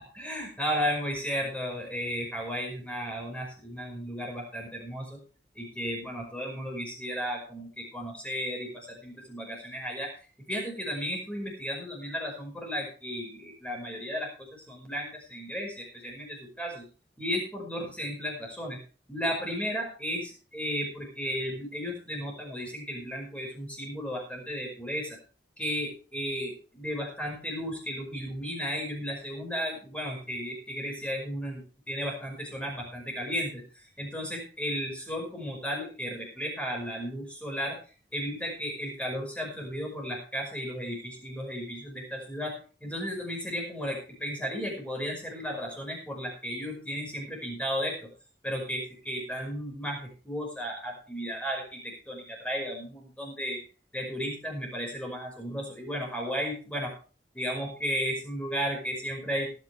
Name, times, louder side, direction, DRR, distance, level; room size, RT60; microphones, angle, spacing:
voice 1, 0.1-5.2 5.6-10.1 10.5-16.8 17.2-18.8 19.1-25.2 25.6-33.6 34.0-37.8 38.1-42.5 42.8-48.1 48.4-53.6 53.9-56.9 57.3-59.5, equal, 5° left, 0 dB, 5.4 m, -34 dB
18.5 x 9.9 x 3.5 m, 0.37 s
head